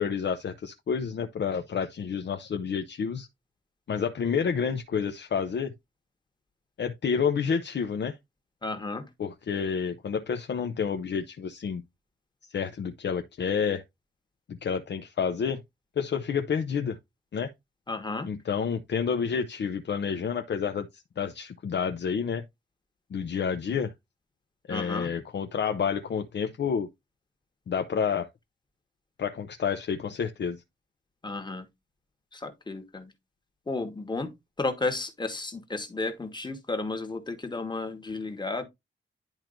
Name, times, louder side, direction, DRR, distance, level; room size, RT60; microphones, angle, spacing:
voice 1, 0.0-3.3 3.9-5.7 6.8-8.2 9.2-11.8 12.5-13.8 14.6-15.6 16.0-17.0 17.3-17.5 18.3-22.4 23.1-23.9 24.7-26.9 27.7-28.3 29.2-30.6, left 6 dB, 55° left, 0.7 m, -29 dB
voice 2, 8.6-9.1 17.9-18.3 24.7-25.1 31.2-31.7 32.3-33.1 33.7-34.3 34.6-38.6, left 3 dB, 20° left, 1.4 m, -33 dB
10.5 x 4.5 x 2.5 m
wide cardioid pair, 130°, 21 cm